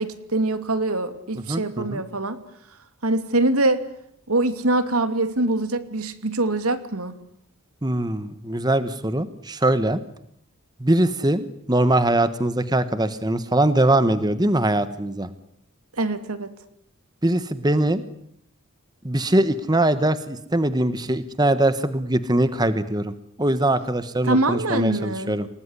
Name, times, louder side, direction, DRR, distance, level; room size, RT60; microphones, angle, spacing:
voice 1, 0.0-2.4 3.0-3.8 4.3-7.1 15.9-16.5 24.2-25.4, right 2 dB, 85° right, 10 dB, 2.7 m, -23 dB
voice 2, 1.5-2.0 7.8-10.0 10.8-11.4 11.7-15.3 17.2-18.0 19.0-25.5, right 1 dB, 20° right, 12 dB, 1.2 m, -22 dB
28.5 x 19.0 x 9.9 m, 0.71 s
head